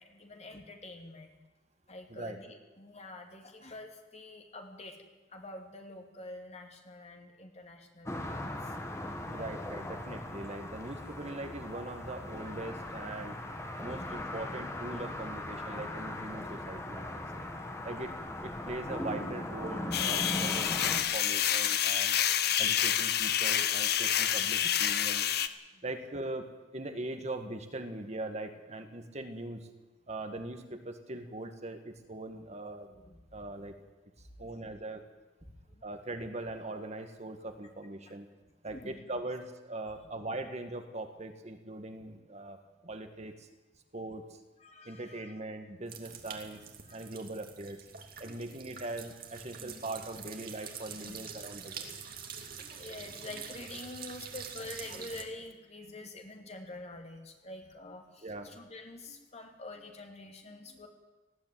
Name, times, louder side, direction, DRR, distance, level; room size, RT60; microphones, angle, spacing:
voice 1, 0.0-1.4 1.9-5.0 5.3-8.7 17.8-18.2 20.5-20.7 21.1-21.2 22.4-22.5 25.7-25.8 32.8-33.2 34.4-34.8 35.7-35.9 38.1-38.2 38.7-39.2 40.0-40.2 44.6-45.3 46.4-46.6 46.9-47.1 48.2-48.6 49.5-49.8 51.0-51.3 51.6-60.9, left 2 dB, 35° left, 3 dB, 2.8 m, -47 dB
sound 1, 8.1-21.0, left 1 dB, 15° left, 2.1 m, -39 dB
voice 2, 9.3-13.4 13.8-17.5 17.9-18.1 18.4-22.2 22.6-25.3 25.8-26.5 26.7-29.7 30.1-32.9 33.3-33.7 34.4-35.0 35.8-38.3 38.6-42.6 42.8-43.5 43.9-44.2 44.9-46.6 46.9-47.8 48.2-51.9 58.2-58.5, right 2 dB, 40° right, 6 dB, 1.8 m, -41 dB
sound 2, 19.9-25.5, left 10 dB, 60° left, 1.0 m, -28 dB
sound 3, 45.9-55.2, right 7 dB, 55° right, 2.5 m, -46 dB
19.0 x 14.5 x 9.3 m, 1.1 s
head